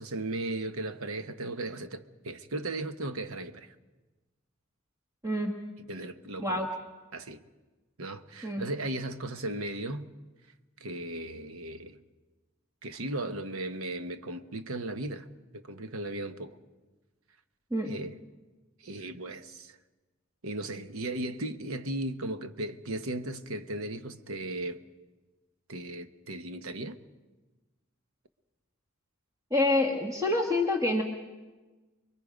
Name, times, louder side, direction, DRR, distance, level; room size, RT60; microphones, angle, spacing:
voice 1, 0.0-3.7 5.9-6.7 7.1-7.4 8.0-10.1 10.8-12.0 12.8-15.3 15.5-16.6 17.8-18.2 18.8-19.8 20.4-24.8 25.7-27.0, right 2 dB, 75° right, 1.1 m, -36 dB
voice 2, 5.2-5.6 6.4-6.7 8.4-8.6 17.7-17.9 29.5-31.0, left 2 dB, 15° right, 1.6 m, -27 dB
29.5 x 22.5 x 5.2 m
head